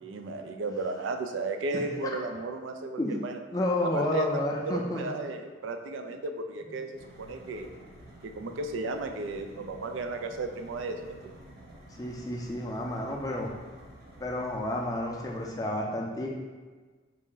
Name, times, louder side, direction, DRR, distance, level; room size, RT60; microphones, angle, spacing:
voice 1, 0.0-3.4 3.9-7.7 8.2-11.3, right 3 dB, 85° right, 5 dB, 0.4 m, -34 dB
voice 2, 1.7-2.1 3.0-5.1 11.9-13.5 14.2-16.3, left 1 dB, 20° left, -1 dB, 0.4 m, -31 dB
sound 1, 6.9-15.5, right 1 dB, 55° right, 0.8 m, -51 dB
4.1 x 2.6 x 3.8 m, 1.4 s
head